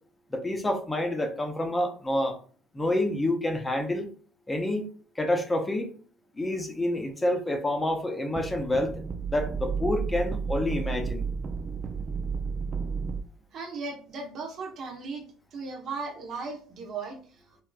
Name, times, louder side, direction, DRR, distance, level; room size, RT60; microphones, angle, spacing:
voice 1, 0.3-2.4 2.7-4.1 4.5-4.9 5.2-5.9 6.4-8.9 9.3-11.3, left 1 dB, 20° left, 4 dB, 0.7 m, -28 dB
sound 1, 8.4-13.2, right 5 dB, 40° right, 0.3 m, -32 dB
voice 2, 13.5-15.3 15.5-17.6, right 4 dB, 60° right, 0 dB, 0.9 m, -37 dB
3.4 x 2.6 x 2.3 m, 0.42 s
supercardioid pair, 75°, 0 cm